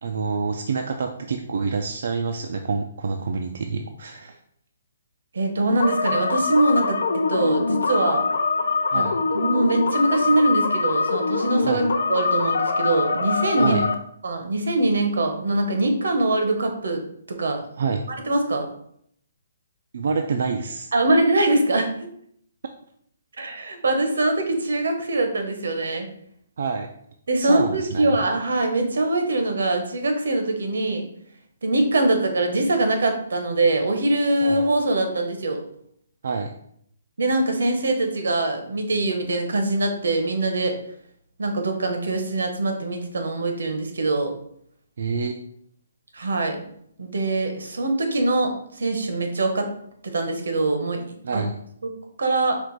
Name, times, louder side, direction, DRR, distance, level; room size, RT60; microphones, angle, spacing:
voice 1, 0.0-4.4 8.9-9.2 11.6-11.8 13.6-13.8 17.8-18.0 19.9-20.9 26.6-26.9 27.4-28.2 34.4-34.6 36.2-36.5 45.0-45.4 51.2-51.5, right 5 dB, 50° right, 4 dB, 0.3 m, -27 dB
voice 2, 5.3-7.0 7.3-8.2 8.9-9.0 9.3-11.8 12.1-13.8 14.2-17.6 18.3-18.7 20.9-21.9 23.4-26.1 27.3-31.0 31.6-35.6 37.2-40.8 41.4-44.3 46.1-46.6 47.0-49.7 50.0-51.1 51.3-51.4 51.8-51.9 52.2-52.6, right 2 dB, 80° right, 5 dB, 0.9 m, -23 dB
sound 1, 5.8-13.9, left 4 dB, 65° left, 0.5 m, -23 dB
4.5 x 2.5 x 3.9 m, 0.68 s
hypercardioid pair, 180°, 0 cm